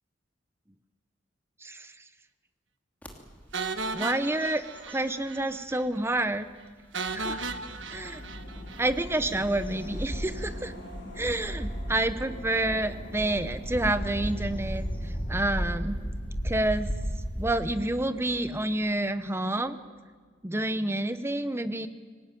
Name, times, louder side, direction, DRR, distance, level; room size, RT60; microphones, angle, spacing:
sound 1, 3.0-3.1 3.6-3.9 4.2-5.7 6.3-6.4 8.1-17.5, equal, 10° left, 2.8 m, -35 dB
sound 2, 3.5-5.4 5.7-5.8 6.2-6.3 6.9-9.2, right 4 dB, 90° right, 1.3 m, -35 dB
voice 1, 3.9-6.5 7.1-7.4 7.9-8.2 8.8-10.7 11.2-14.8 15.3-16.0 16.4-16.9 17.4-19.8 20.4-21.9, right 1 dB, 15° right, 11 dB, 0.9 m, -28 dB
sound 3, 7.0-19.5 19.7-19.8, equal, 75° left, 6.5 m, -43 dB
25.0 x 18.5 x 9.2 m, 1.5 s
head